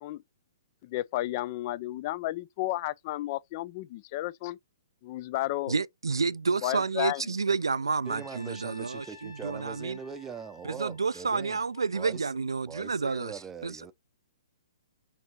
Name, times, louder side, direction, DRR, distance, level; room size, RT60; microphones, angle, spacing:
voice 1, 0.8-4.6 5.0-5.7 6.6-7.2, left 16 dB, 40° left, 0.3 m, -32 dB
voice 2, 5.7-10.0 10.6-13.8, right 4 dB, 80° right, 0.3 m, -30 dB
Trumpet, 8.0-12.3, left 4 dB, 80° left, 1.9 m, -53 dB
voice 3, 8.0-11.6 11.9-12.3 12.7-13.9, right 6 dB, 15° right, 0.6 m, -42 dB
6.6 x 2.7 x 2.9 m
figure-of-eight pair, 120°, 2 cm